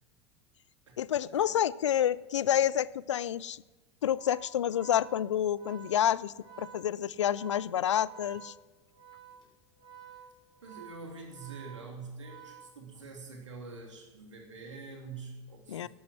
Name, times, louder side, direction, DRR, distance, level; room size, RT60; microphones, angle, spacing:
voice 1, 1.0-3.6 4.0-8.5 15.7-15.9, left 10 dB, 70° left, 21 dB, 0.4 m, -29 dB
Organ, 4.1-13.2, right 8 dB, 35° left, 4.7 m, -52 dB
voice 2, 10.6-15.9, right 4 dB, 75° right, 1 dB, 2.9 m, -45 dB
12.0 x 11.5 x 6.2 m, 1.1 s
figure-of-eight pair, 80°, 16 cm